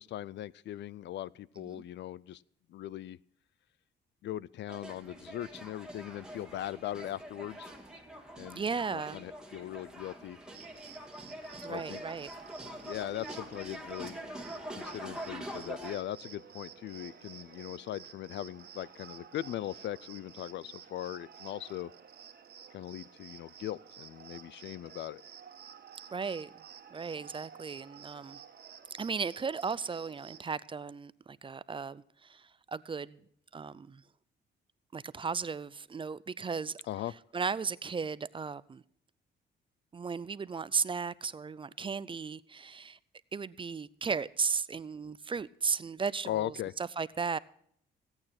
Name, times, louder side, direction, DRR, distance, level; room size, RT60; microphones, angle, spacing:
voice 1, 0.0-2.4 2.7-3.2 4.2-7.7 8.4-8.6 8.9-10.4 11.7-12.0 12.8-14.2 14.8-21.9 22.7-25.2 36.9-37.1 46.3-46.7, left 12 dB, 65° left, 0.4 m, -39 dB
sound 1, 4.7-16.0, right 1 dB, 5° right, 2.1 m, -45 dB
voice 2, 8.5-9.2 11.6-12.3 26.1-26.5 26.9-28.4 29.0-33.2 33.5-34.0 34.9-36.8 37.3-38.8 39.9-43.0 43.3-47.4, right 5 dB, 25° right, 0.4 m, -35 dB
Cricket, 10.5-30.4, right 7 dB, 55° right, 1.5 m, -52 dB
16.0 x 8.9 x 5.8 m
cardioid pair, 90°, 20 cm